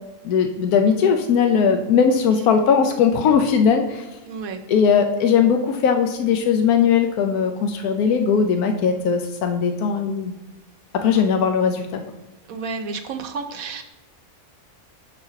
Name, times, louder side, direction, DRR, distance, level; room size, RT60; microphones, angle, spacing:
voice 1, 0.2-4.1 4.7-10.3 10.9-12.0, left 6 dB, 90° left, 6 dB, 1.2 m, -19 dB
voice 2, 4.3-4.6 11.0-11.3 12.5-13.8, right 4 dB, 75° right, 6 dB, 1.1 m, -31 dB
6.5 x 4.1 x 5.7 m, 1.1 s
omnidirectional pair, 1.5 m